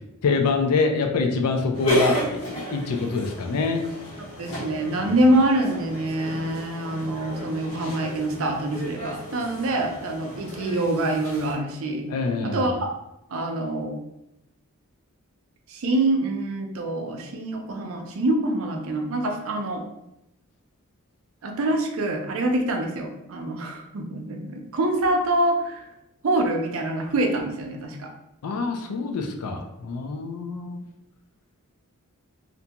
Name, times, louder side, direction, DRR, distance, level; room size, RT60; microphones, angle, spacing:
voice 1, 0.2-3.8 5.0-5.1 12.1-12.7 28.4-30.8, left 4 dB, 85° left, 5 dB, 0.4 m, -25 dB
sound 1, 1.7-11.5, equal, 65° left, 0.9 m, -32 dB
voice 2, 4.4-12.0 12.4-12.9 13.3-14.0 15.7-19.8 21.4-25.9 26.2-28.1, right 1 dB, 65° right, 3 dB, 0.4 m, -25 dB
2.5 x 2.2 x 2.8 m, 0.85 s
head